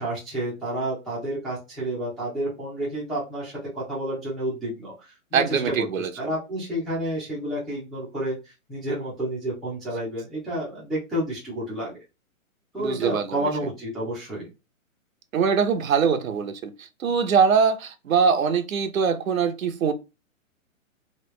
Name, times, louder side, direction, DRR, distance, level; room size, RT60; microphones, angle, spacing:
voice 1, 0.0-5.9 6.2-12.0 12.7-14.5, right 1 dB, ahead, 0.6 m, -30 dB
voice 2, 5.3-6.1 12.8-13.5 15.3-19.9, right 6 dB, 75° right, 0.8 m, -23 dB
3.2 x 2.9 x 3.1 m
hypercardioid pair, 155°, 41 cm